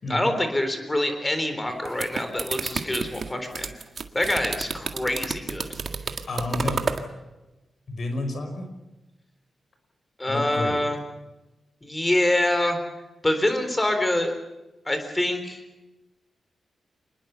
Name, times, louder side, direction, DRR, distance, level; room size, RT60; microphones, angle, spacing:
voice 1, 0.1-3.7 4.1-5.7 10.2-11.0 11.8-12.8 13.2-14.3 14.9-15.6, left 1 dB, 15° left, 7 dB, 3.7 m, -25 dB
sound 1, 1.7-7.1, right 5 dB, 45° right, 1.8 m, -31 dB
voice 2, 6.3-6.8 7.9-8.7 10.3-10.9, left 2 dB, 50° left, 6 dB, 5.2 m, -30 dB
27.5 x 21.0 x 7.0 m, 1.0 s
wide cardioid pair, 155°, 0 cm